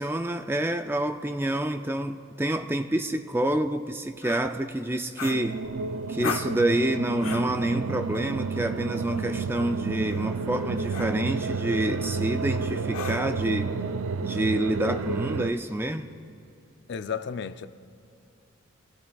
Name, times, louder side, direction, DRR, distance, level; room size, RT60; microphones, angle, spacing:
voice 1, 0.0-5.6 6.1-13.7 14.2-16.1, right 1 dB, 10° right, 0.4 m, -28 dB
sound 1, 4.2-4.5 5.2-5.8 6.2-6.6 7.2-7.6 9.0-9.2 10.1-10.4 10.9-11.2 12.9-13.4, left 5 dB, 80° left, 0.8 m, -36 dB
sound 2, 5.2-15.5, right 4 dB, 80° right, 0.4 m, -31 dB
voice 2, 16.9-17.7, left 6 dB, 55° left, 0.4 m, -32 dB
24.5 x 15.5 x 2.3 m
head